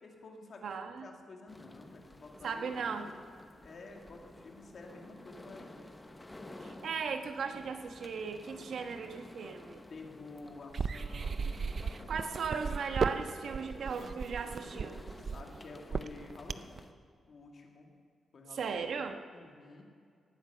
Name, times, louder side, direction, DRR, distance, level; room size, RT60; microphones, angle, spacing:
voice 1, 0.0-0.7 1.0-2.8 3.6-5.9 9.9-13.0 15.2-16.8 17.2-18.0 18.3-18.7 19.3-19.8, left 3 dB, 45° left, 2 dB, 2.2 m, -51 dB
voice 2, 0.6-1.1 2.4-3.1 6.6-9.8 12.1-15.3 18.5-19.2, right 5 dB, 60° right, 6 dB, 1.2 m, -37 dB
sound 1, 1.5-16.9, left 1 dB, 10° left, 0.9 m, -52 dB
sound 2, 10.7-16.8, right 5 dB, 40° right, 0.4 m, -35 dB
18.0 x 9.3 x 6.8 m, 2.2 s
wide cardioid pair, 155°, 0 cm